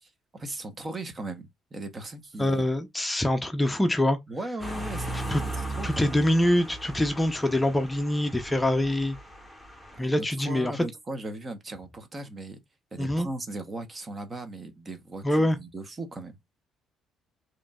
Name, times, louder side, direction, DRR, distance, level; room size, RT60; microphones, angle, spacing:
voice 1, 0.0-2.7 4.3-5.1 5.8-6.2 10.0-12.6 12.9-16.4, right 2 dB, 30° right, 0.9 m, -38 dB
voice 2, 2.4-4.2 5.1-5.4 5.8-9.2 10.0-10.9 13.0-13.3 15.2-15.6, left 1 dB, 10° left, 0.7 m, -25 dB
sound 1, 4.6-10.0, right 1 dB, 5° right, 1.6 m, -37 dB
4.9 x 3.1 x 2.3 m
cardioid pair, 95°, 0 cm